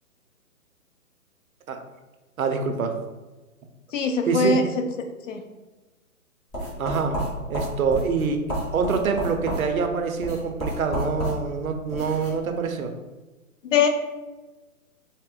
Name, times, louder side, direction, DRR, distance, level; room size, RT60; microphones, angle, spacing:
voice 1, 2.4-3.0 4.3-4.6 6.8-7.2 7.5-8.4 8.7-12.9, right 5 dB, 70° right, 5 dB, 0.7 m, -25 dB
voice 2, 3.9-4.6 5.3-5.4 13.6-13.9, left 4 dB, 60° left, 5 dB, 0.6 m, -21 dB
sound 1, 6.5-12.4, equal, 15° left, 0.7 m, -31 dB
3.4 x 2.1 x 3.8 m, 1.2 s
hypercardioid pair, 135°, 44 cm